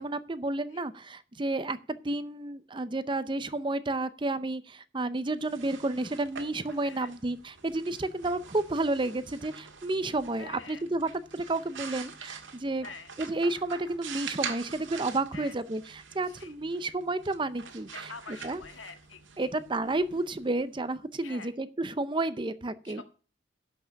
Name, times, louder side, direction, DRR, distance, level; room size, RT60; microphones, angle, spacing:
voice 1, 0.0-12.9 13.2-18.6 19.4-23.0, right 2 dB, 25° right, 14 dB, 0.6 m, -31 dB
sound 1, 5.3-21.0, right 6 dB, 85° right, 1.7 m, -45 dB
voice 2, 6.8-7.1 10.4-10.8 12.8-13.1 15.3-15.6 16.3-16.5 17.9-19.5 21.2-21.5 22.9-23.0, left 5 dB, 85° left, 7 dB, 1.7 m, -46 dB
11.5 x 5.8 x 6.3 m, 0.38 s
head